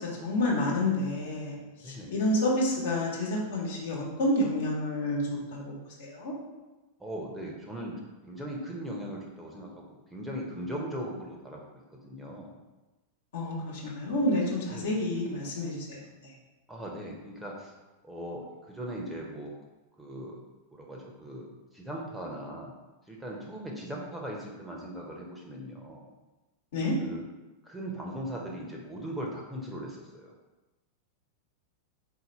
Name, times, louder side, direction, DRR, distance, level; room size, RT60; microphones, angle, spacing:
voice 1, 0.0-6.3 13.3-16.3 26.7-26.9, left 1 dB, 60° left, -3 dB, 1.1 m, -29 dB
voice 2, 1.8-2.2 7.0-11.6 11.9-12.5 14.7-15.0 16.7-17.7 18.0-19.5 20.0-20.4 20.7-21.5 21.7-22.7 23.1-26.1 27.0-27.2 27.6-30.3, equal, 5° right, -2 dB, 0.8 m, -39 dB
4.1 x 2.7 x 4.3 m, 1.1 s
figure-of-eight pair, 90°, 0 cm